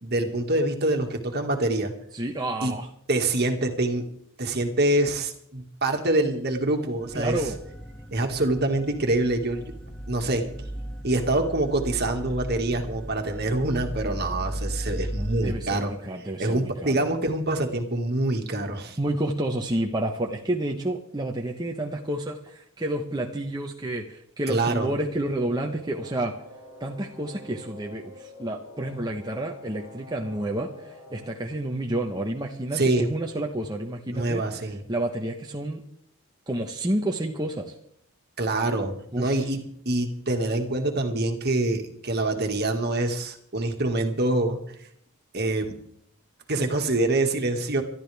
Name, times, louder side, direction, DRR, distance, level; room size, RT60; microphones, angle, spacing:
voice 1, 0.0-1.9 2.6-2.7 3.1-4.1 4.4-7.4 8.1-9.6 10.1-10.4 11.0-15.9 16.4-19.0 24.5-24.9 32.7-33.0 34.1-34.8 38.4-44.6 45.3-45.8 46.5-47.8, right 2 dB, 45° right, 4 dB, 2.0 m, -25 dB
voice 2, 2.1-2.9 7.1-7.6 15.4-17.1 19.0-26.3 26.8-34.4 34.9-35.8 36.5-37.7 39.1-39.5, right 1 dB, 20° right, 1 dB, 1.1 m, -30 dB
sound 1, 7.0-15.6, right 1 dB, 5° left, 2.1 m, -36 dB
sound 2, 25.2-31.3, left 1 dB, 75° left, 2.1 m, -46 dB
25.5 x 12.5 x 3.5 m, 0.68 s
head